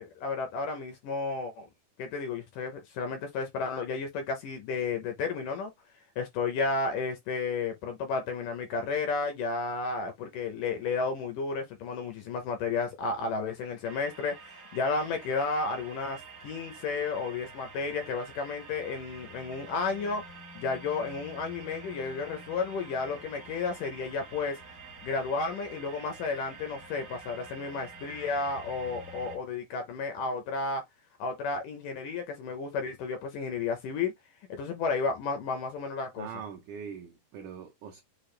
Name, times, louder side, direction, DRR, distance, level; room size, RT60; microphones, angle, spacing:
voice 1, 0.0-1.7 2.0-5.7 6.2-20.2 20.5-24.6 25.0-30.8 31.2-34.1 34.5-36.3, left 4 dB, 75° left, 2.0 m, -32 dB
sound 1, 13.8-29.4, right 3 dB, 55° right, 0.9 m, -48 dB
voice 2, 36.2-38.0, right 7 dB, 85° right, 1.7 m, -42 dB
6.7 x 2.4 x 3.2 m
omnidirectional pair, 4.5 m